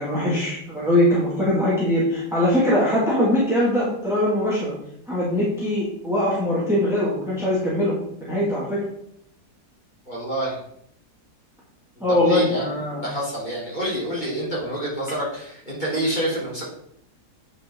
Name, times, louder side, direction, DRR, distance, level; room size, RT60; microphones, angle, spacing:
voice 1, 0.0-4.7 5.1-7.9 8.2-8.8 12.0-13.1, left 1 dB, ahead, -7 dB, 2.1 m, -21 dB
voice 2, 10.1-10.6 12.2-12.7 13.0-16.6, right 1 dB, 25° left, -7 dB, 3.8 m, -27 dB
8.6 x 5.8 x 3.8 m, 0.72 s
omnidirectional pair, 1.7 m